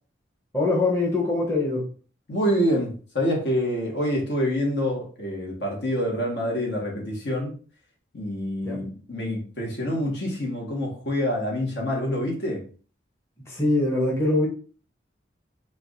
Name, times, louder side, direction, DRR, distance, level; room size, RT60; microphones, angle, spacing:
voice 1, 0.5-1.9 8.6-8.8 13.4-14.5, left 2 dB, 15° left, 0.7 m, -23 dB
voice 2, 2.3-7.5 8.1-12.7, equal, 75° left, 1.3 m, -26 dB
4.5 x 2.5 x 2.5 m
head